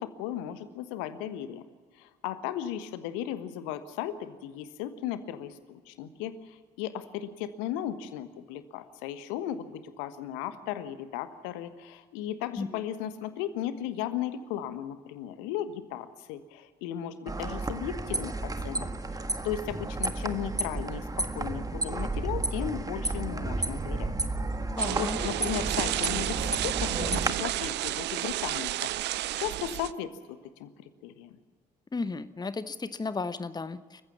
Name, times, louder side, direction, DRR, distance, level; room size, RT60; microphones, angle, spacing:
voice 1, 0.0-1.6 2.0-19.2 19.4-24.1 24.9-31.4, left 10 dB, 70° left, 11 dB, 1.4 m, -36 dB
sound 1, 17.3-27.3, right 2 dB, 15° right, 1.7 m, -32 dB
voice 2, 24.8-25.2 31.9-34.0, left 4 dB, 20° left, 13 dB, 1.0 m, -34 dB
sound 2, 24.8-29.9, right 15 dB, 55° right, 0.6 m, -31 dB
28.0 x 15.5 x 7.3 m, 1.5 s
figure-of-eight pair, 50°, 21 cm